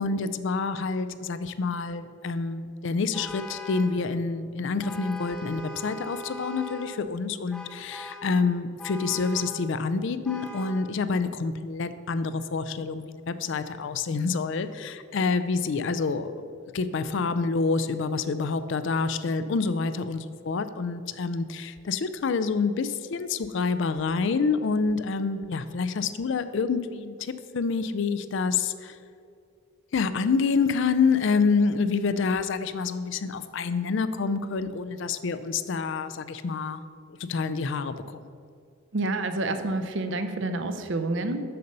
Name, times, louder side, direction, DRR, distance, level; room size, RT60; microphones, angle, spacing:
voice 1, 0.0-29.0 29.9-36.8 37.2-38.2, left 4 dB, 60° left, 12 dB, 0.4 m, -27 dB
Vehicle horn car horn honking, 3.1-4.0 4.8-7.0 7.5-8.4 8.8-9.6 10.3-10.9, equal, 5° left, 0.5 m, -40 dB
voice 2, 38.9-41.5, right 2 dB, 55° right, 8 dB, 0.6 m, -28 dB
6.7 x 6.7 x 5.3 m, 2.4 s
head